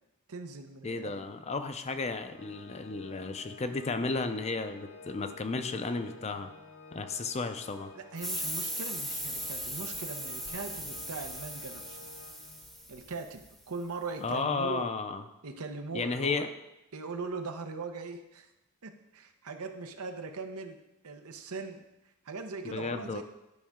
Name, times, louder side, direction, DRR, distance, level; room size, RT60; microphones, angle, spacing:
voice 1, 0.3-1.3 7.9-12.0 12.9-14.9 15.4-16.5 16.9-18.5 18.8-21.8 22.2-23.2, right 3 dB, 85° right, 6 dB, 0.8 m, -40 dB
voice 2, 0.8-6.5 6.9-7.9 14.2-15.2 15.9-16.5 22.6-23.2, left 4 dB, 30° left, 9 dB, 0.5 m, -33 dB
Organ, 2.2-12.9, left 4 dB, 55° left, 1.0 m, -51 dB
sound 1, 8.2-13.5, equal, ahead, 0.8 m, -38 dB
12.0 x 5.2 x 3.6 m, 0.93 s
head